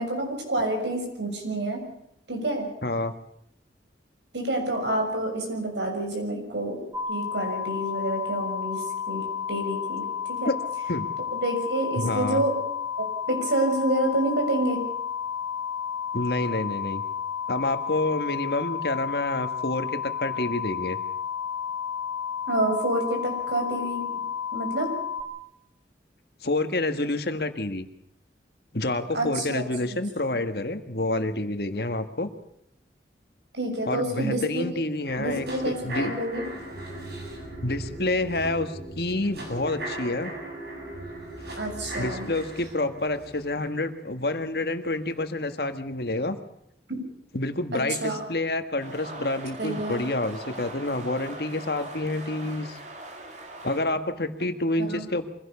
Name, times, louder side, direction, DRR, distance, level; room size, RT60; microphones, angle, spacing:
voice 1, 0.0-1.8 2.3-2.7 4.3-6.8 7.1-9.2 9.5-10.5 11.3-12.5 13.0-14.8 22.5-24.0 24.5-24.9 29.1-29.6 33.5-34.6 35.2-36.5 41.6-42.3 46.9-47.0 47.7-48.2 49.6-50.0 54.8-55.1, right 1 dB, 85° right, 3 dB, 6.5 m, -28 dB
voice 2, 2.8-3.1 10.4-10.6 10.9-11.1 12.0-12.4 16.1-17.0 17.5-21.0 26.4-27.9 28.7-32.3 33.8-36.2 37.6-40.3 42.0-46.4 47.3-52.8 53.6-55.3, left 2 dB, 60° left, 8 dB, 1.7 m, -28 dB
sound 1, 6.9-25.2, left 7 dB, 15° right, 2.9 m, -32 dB
sound 2, 35.1-45.1 45.5-45.6, right 1 dB, 65° right, 7.4 m, -38 dB
sound 3, 48.8-53.8, right 2 dB, 45° right, 3.0 m, -40 dB
24.0 x 16.5 x 7.1 m, 0.77 s
head